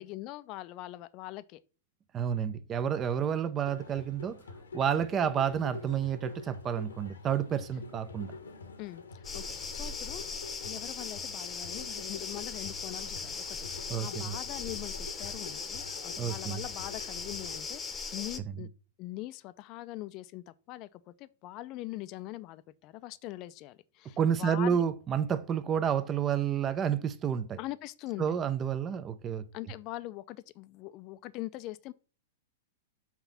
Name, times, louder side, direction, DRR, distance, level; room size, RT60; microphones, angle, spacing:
voice 1, 0.0-1.6 8.8-10.3 10.6-18.7 19.0-24.8 27.6-28.4 29.5-31.9, left 17 dB, 40° left, 0.5 m, -42 dB
voice 2, 2.1-4.4 4.7-8.3 13.9-14.3 16.2-16.6 24.2-27.6 28.2-29.4, right 8 dB, 25° right, 0.7 m, -30 dB
sound 1, 3.6-17.6, left 4 dB, 85° left, 1.2 m, -47 dB
sound 2, 9.2-18.4, left 5 dB, 20° left, 1.0 m, -39 dB
5.9 x 3.9 x 5.7 m
hypercardioid pair, 110°, 0 cm